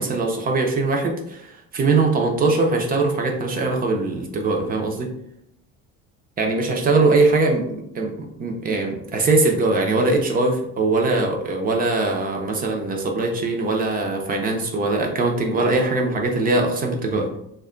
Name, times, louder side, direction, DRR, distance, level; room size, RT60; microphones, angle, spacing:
voice 1, 0.0-5.1 6.4-8.1 8.4-17.3, right 3 dB, 25° right, 2 dB, 0.5 m, -21 dB
3.5 x 2.2 x 3.6 m, 0.75 s
cardioid pair, 160°, 34 cm